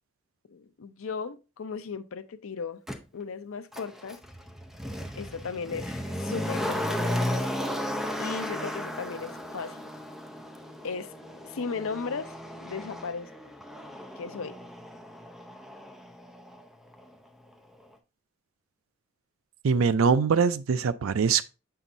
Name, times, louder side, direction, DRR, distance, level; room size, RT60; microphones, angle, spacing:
voice 1, 0.5-2.8 3.1-4.2 5.1-7.0 8.2-9.9 10.8-11.1 11.4-12.3 12.6-13.3 14.2-14.6, left 5 dB, 75° left, 0.6 m, -36 dB
Motor vehicle (road), 2.9-3.0 3.7-16.6 16.9-17.0, left 1 dB, ahead, 0.6 m, -35 dB
voice 2, 19.6-21.5, right 5 dB, 80° right, 0.4 m, -23 dB
7.0 x 5.7 x 2.6 m
head